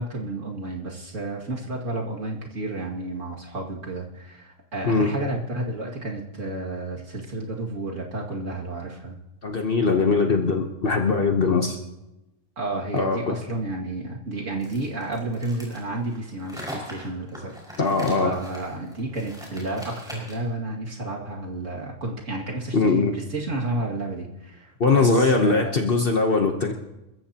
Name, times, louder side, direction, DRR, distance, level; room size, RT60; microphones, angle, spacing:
voice 1, 0.0-9.2 12.6-17.8 18.2-25.8, right 2 dB, 75° right, -2 dB, 2.7 m, -31 dB
voice 2, 9.4-11.8 12.9-13.3 17.8-18.4 22.7-23.1 24.8-26.7, left 4 dB, 50° left, 3 dB, 1.2 m, -21 dB
sound 1, 14.6-20.5, equal, 5° right, 5.5 m, -41 dB
28.5 x 14.0 x 2.9 m, 0.95 s
omnidirectional pair, 1.3 m